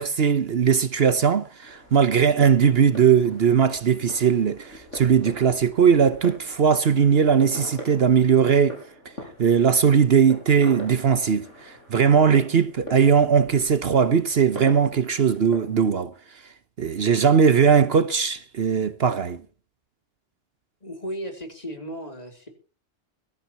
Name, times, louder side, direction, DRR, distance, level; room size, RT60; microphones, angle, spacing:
voice 1, 0.0-8.8 9.4-16.1 16.8-19.4, right 7 dB, 60° right, 1.1 m, -19 dB
sound 1, 1.6-15.8, equal, 85° left, 6.8 m, -42 dB
voice 2, 20.8-22.5, equal, 35° left, 3.6 m, -35 dB
22.5 x 13.5 x 2.9 m
omnidirectional pair, 1.2 m